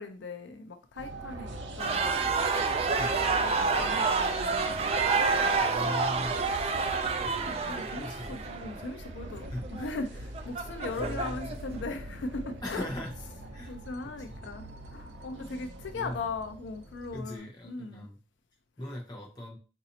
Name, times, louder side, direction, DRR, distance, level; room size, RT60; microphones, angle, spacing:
voice 1, 0.0-1.5 1.8-2.3 3.3-5.6 7.4-12.9 13.7-18.1 18.8-18.9, left 3 dB, 90° left, 0.4 m, -39 dB
sound 1, 1.0-17.2, right 1 dB, 80° right, 0.5 m, -44 dB
sound 2, 1.4-17.4, left 1 dB, 60° right, 0.9 m, -49 dB
sound 3, 1.8-11.7, right 4 dB, 35° right, 0.3 m, -29 dB
voice 2, 3.0-3.3 5.6-6.3 6.6-6.9 7.2-7.6 7.9-8.6 9.3-9.7 11.0-11.5 12.6-13.1 13.5-13.8 14.0-14.4 15.9-16.3 17.1-18.2 18.8-19.6, left 1 dB, 25° left, 0.7 m, -40 dB
4.0 x 2.6 x 2.7 m
head